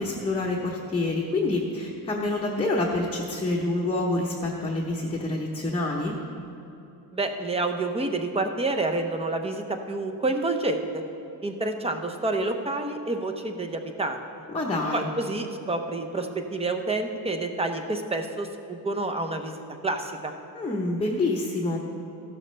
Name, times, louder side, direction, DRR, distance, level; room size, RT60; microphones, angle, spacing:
voice 1, 0.0-6.2 14.5-15.1 20.5-21.8, left 2 dB, 15° left, -3 dB, 0.9 m, -27 dB
voice 2, 7.1-11.0 11.4-14.2 14.9-19.5 19.8-20.3, right 2 dB, 15° right, 5 dB, 0.7 m, -28 dB
14.5 x 12.0 x 3.3 m, 2.8 s
cardioid pair, 155°, 39 cm